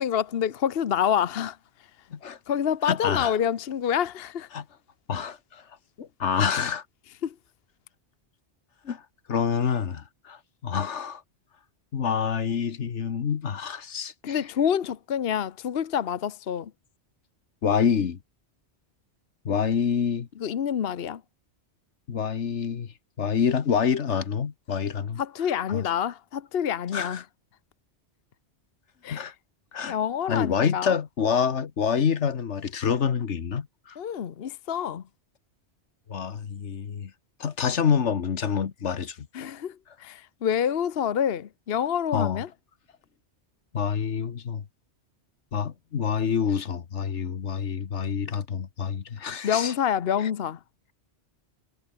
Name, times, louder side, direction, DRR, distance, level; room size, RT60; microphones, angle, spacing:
voice 1, 0.0-1.6 2.5-4.5 7.2-7.3 14.2-16.7 20.4-21.2 25.2-27.2 29.0-29.3 29.9-30.9 34.0-35.0 39.3-42.5 49.4-50.6, left 8 dB, 60° left, 1.0 m, -27 dB
voice 2, 2.8-3.3 4.5-4.6 5.1-5.6 6.0-6.8 8.8-9.0 9.3-11.2 11.9-14.4 17.6-18.2 19.4-20.3 22.1-22.9 23.2-25.2 25.7-25.8 26.9-27.2 29.1-29.3 29.7-30.0 30.3-34.0 36.1-37.1 37.4-39.3 42.1-42.4 43.7-44.6 45.5-49.7 50.2-50.3, left 7 dB, 80° left, 1.5 m, -27 dB
omnidirectional pair, 1.2 m